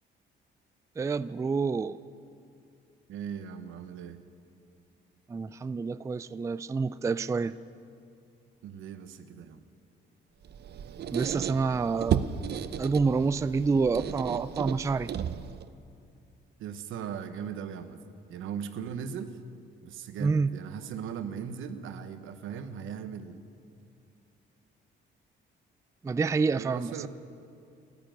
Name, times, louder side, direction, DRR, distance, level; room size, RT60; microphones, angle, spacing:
voice 1, 1.0-2.0 5.3-7.5 11.1-12.2 12.8-15.1 20.2-20.5 26.0-27.1, right 4 dB, 15° right, 15 dB, 0.3 m, -28 dB
voice 2, 3.1-4.2 8.6-9.6 16.6-18.0 18.3-19.4 19.8-23.5 26.5-27.1, right 7 dB, 85° right, 9 dB, 1.0 m, -38 dB
Squeak, 10.4-15.7, right 8 dB, 55° right, 0.6 m, -34 dB
14.0 x 11.0 x 9.1 m, 2.5 s
cardioid pair, 90°, 20 cm